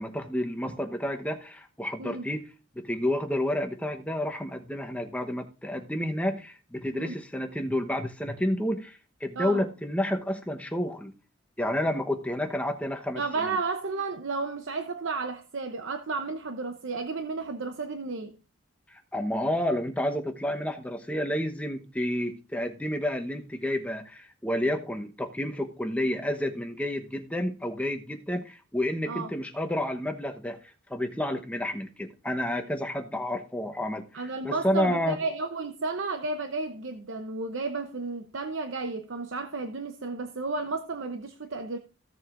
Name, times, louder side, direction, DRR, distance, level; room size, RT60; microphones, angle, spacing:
voice 1, 0.0-2.5 2.7-11.1 11.6-13.6 18.9-35.2, left 1 dB, 5° left, 0.9 m, -30 dB
voice 2, 13.2-18.3 29.1-29.3 34.1-41.8, right 3 dB, 75° right, 0.8 m, -32 dB
15.5 x 7.3 x 2.5 m
head